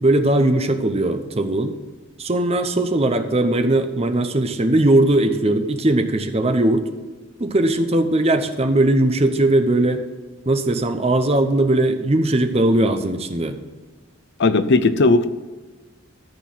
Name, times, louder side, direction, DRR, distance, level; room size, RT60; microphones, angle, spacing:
voice 1, 0.0-1.7 2.2-6.8 7.4-10.0 10.5-13.6, right 1 dB, 30° right, 7 dB, 0.8 m, -19 dB
voice 2, 14.4-15.3, left 3 dB, 55° left, 12 dB, 0.6 m, -16 dB
13.5 x 4.6 x 7.6 m, 1.3 s
head